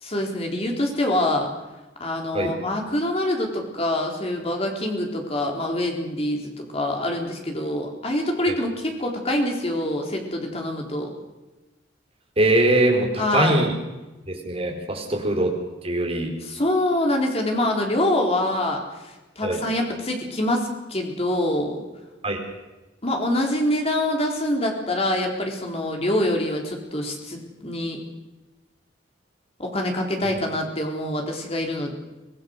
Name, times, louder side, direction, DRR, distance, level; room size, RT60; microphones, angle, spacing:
voice 1, 0.0-1.5 2.0-11.1 13.2-13.6 15.2-15.3 16.4-21.9 23.0-28.0 29.6-31.9, left 1 dB, 35° left, 1 dB, 3.9 m, -25 dB
voice 2, 12.4-13.7 14.3-15.5 15.8-16.3 19.4-19.6 22.2-22.4, right 1 dB, 35° right, 0 dB, 4.5 m, -22 dB
25.0 x 17.5 x 6.6 m, 1.1 s
head